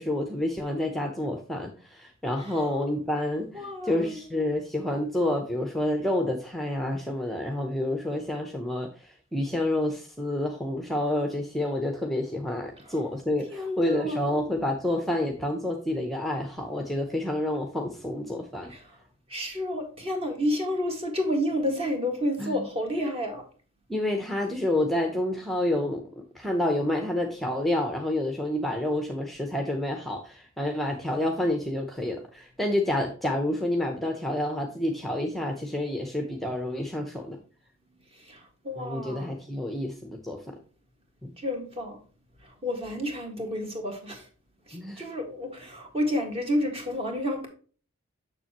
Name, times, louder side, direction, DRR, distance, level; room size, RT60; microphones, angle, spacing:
voice 1, 0.0-18.7 22.4-22.7 23.9-37.4 38.8-40.5 41.2-41.3 44.7-45.0, left 1 dB, ahead, 0.7 m, -29 dB
voice 2, 2.4-2.7 3.5-4.3 12.8-13.0 13.5-14.2 18.7-19.0 19.3-23.4 38.1-39.4 41.4-42.0 42.4-44.3 44.7-47.5, left 1 dB, 30° right, 1.7 m, -30 dB
6.9 x 6.7 x 2.9 m
head